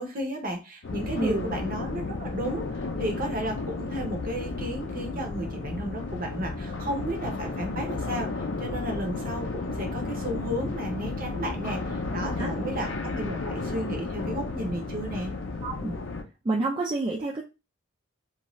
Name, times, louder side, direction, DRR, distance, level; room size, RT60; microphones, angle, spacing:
voice 1, 0.0-15.3, equal, 40° right, 3 dB, 0.7 m, -33 dB
sound 1, 0.8-16.2, left 3 dB, 55° left, 0.5 m, -33 dB
voice 2, 1.2-1.5 12.4-12.5 15.6-16.0 16.4-17.4, right 3 dB, 20° right, -2 dB, 0.3 m, -28 dB
2.6 x 2.3 x 3.0 m, 0.28 s
head